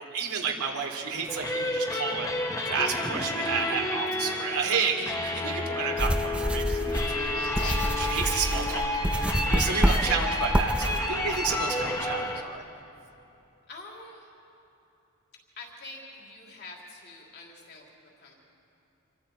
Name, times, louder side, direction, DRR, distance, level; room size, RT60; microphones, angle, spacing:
voice 1, 0.0-2.4 2.7-12.6, right 5 dB, 80° right, 1 dB, 2.7 m, -31 dB
sound 1, 1.3-12.4, left 2 dB, 15° left, 1.0 m, -30 dB
sound 2, 4.9-5.3 5.8-6.0 7.0-10.2, left 5 dB, 80° left, 4.5 m, -45 dB
sound 3, 6.0-11.0, equal, 5° right, 0.7 m, -27 dB
voice 2, 13.7-14.3 15.6-18.3, left 2 dB, 45° left, -1 dB, 3.3 m, -46 dB
27.0 x 23.5 x 4.5 m, 2.9 s
head